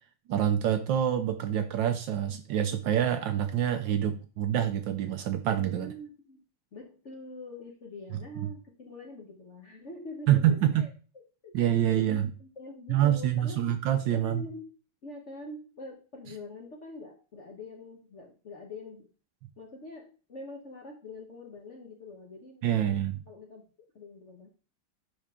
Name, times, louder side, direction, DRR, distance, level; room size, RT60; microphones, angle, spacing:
voice 1, 0.3-5.9 8.4-8.5 10.3-10.9 11.5-12.3 12.9-14.5 22.6-23.2, right 10 dB, 75° right, 8 dB, 1.2 m, -26 dB
voice 2, 5.7-6.4 6.7-10.9 11.4-13.7 14.1-14.7 15.0-19.1 19.6-22.9 23.3-23.6 23.9-24.5, left 2 dB, 50° left, 1 dB, 0.9 m, -44 dB
10.0 x 3.6 x 3.6 m, 0.38 s
omnidirectional pair, 2.4 m